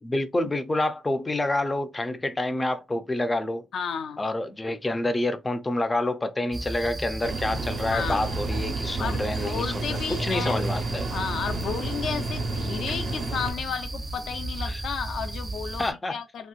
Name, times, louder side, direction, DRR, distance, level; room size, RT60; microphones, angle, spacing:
voice 1, 0.0-3.7 4.2-11.1 14.6-14.8 15.8-16.1, left 2 dB, 20° left, 0.5 m, -28 dB
voice 2, 3.7-4.2 7.9-8.3 9.0-10.6 11.1-16.5, left 6 dB, 65° left, 0.5 m, -32 dB
sound 1, 6.5-15.9, right 2 dB, 25° right, 0.7 m, -35 dB
sound 2, 7.2-13.5, right 3 dB, 60° right, 1.1 m, -31 dB
2.9 x 2.8 x 2.4 m
cardioid pair, 90°, 0 cm